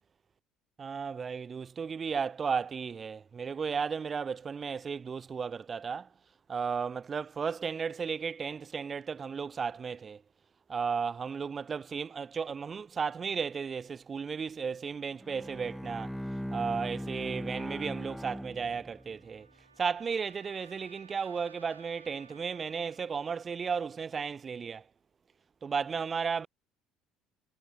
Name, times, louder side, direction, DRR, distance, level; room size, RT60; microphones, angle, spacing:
voice 1, 0.8-6.1 6.5-10.2 10.7-16.2 16.5-19.5 19.8-24.8 25.6-26.5, right 6 dB, 30° right, 1.3 m, -34 dB
Bowed string instrument, 15.1-19.2, equal, ahead, 6.9 m, -39 dB
Trumpet, 18.5-23.3, right 5 dB, 85° right, 6.1 m, -59 dB
figure-of-eight pair, 60°, 0 cm